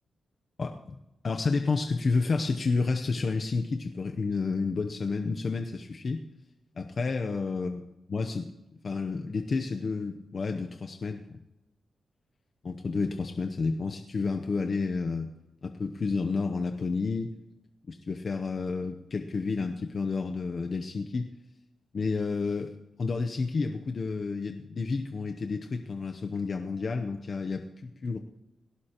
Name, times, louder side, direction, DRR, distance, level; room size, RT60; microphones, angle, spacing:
voice 1, 0.6-0.9 1.2-6.2 6.8-7.8 8.1-8.5 8.8-11.2 12.6-15.3 15.6-17.3 17.9-21.3 21.9-22.7 23.0-28.2, left 4 dB, 45° left, 4 dB, 0.8 m, -30 dB
18.5 x 17.5 x 3.0 m, 0.95 s
wide cardioid pair, 135°, 0 cm